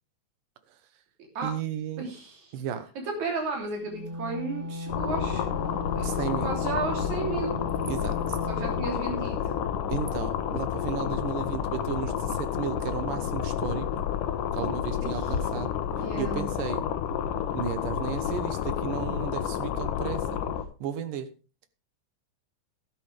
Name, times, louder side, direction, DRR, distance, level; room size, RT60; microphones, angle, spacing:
voice 1, 1.4-2.1 2.5-2.9 6.0-6.5 7.9-8.4 9.9-13.9 14.5-15.7 16.2-16.8 17.5-20.4 20.8-21.3, right 8 dB, 90° right, 11 dB, 2.8 m, -34 dB
voice 2, 2.0-2.5 3.0-5.4 6.0-6.1 6.4-7.6 8.5-9.5 15.0-15.3 16.0-16.5, right 3 dB, 65° right, 2 dB, 4.6 m, -33 dB
Wind instrument woodwind instrument, 3.8-8.9, left 2 dB, 45° right, 4.1 m, -36 dB
sound 1, 4.9-20.6, left 9 dB, 85° left, 2.6 m, -30 dB
13.0 x 12.0 x 3.4 m, 0.32 s
omnidirectional pair, 3.7 m